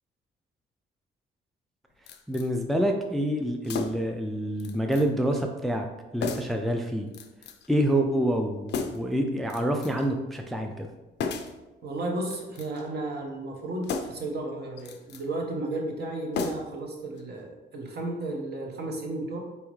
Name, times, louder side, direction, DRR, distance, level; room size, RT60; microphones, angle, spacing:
sound 1, 2.1-2.5 3.6-4.2 4.6-5.1 5.3-5.5 6.2-6.6 7.1-7.7 8.7-9.1 9.5-10.1 11.2-11.6 12.2-12.9 13.8-14.3 14.8-15.2 16.3-16.9 17.2-17.3, left 5 dB, 60° left, 0.5 m, -34 dB
voice 1, 2.3-5.9 6.1-7.1 7.7-10.9, right 1 dB, ahead, 3 dB, 0.4 m, -27 dB
voice 2, 11.8-19.4, right 2 dB, 55° right, 1 dB, 1.0 m, -33 dB
4.1 x 3.5 x 3.1 m, 1.1 s
cardioid pair, 90°, 20 cm